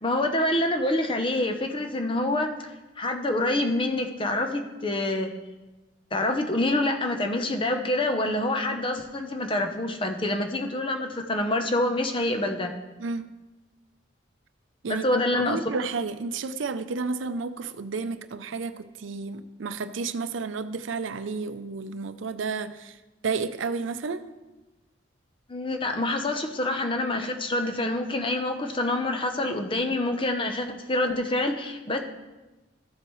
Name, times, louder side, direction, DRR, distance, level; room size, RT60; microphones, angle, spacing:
voice 1, 0.0-2.7 3.0-5.3 6.1-12.7 14.9-15.6 25.5-32.0, left 1 dB, 25° left, 5 dB, 0.7 m, -26 dB
voice 2, 13.0-13.3 14.8-23.0 23.2-24.3, right 4 dB, 85° right, 11 dB, 0.5 m, -31 dB
13.5 x 7.7 x 3.1 m, 1.1 s
head